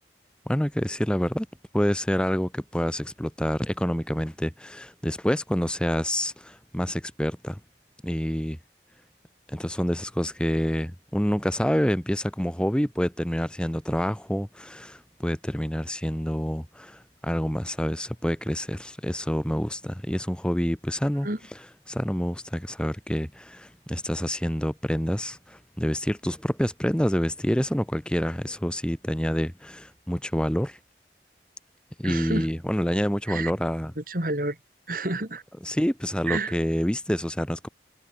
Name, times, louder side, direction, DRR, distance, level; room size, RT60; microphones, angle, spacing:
voice 1, 0.5-1.5 1.7-7.6 8.0-8.6 9.5-30.8 32.0-33.9 35.6-37.7, equal, 5° left, 1.0 m, -27 dB
voice 2, 32.0-32.5 33.3-33.5 34.0-34.6 34.9-35.4 36.3-36.6, right 2 dB, 50° right, 3.5 m, -29 dB
head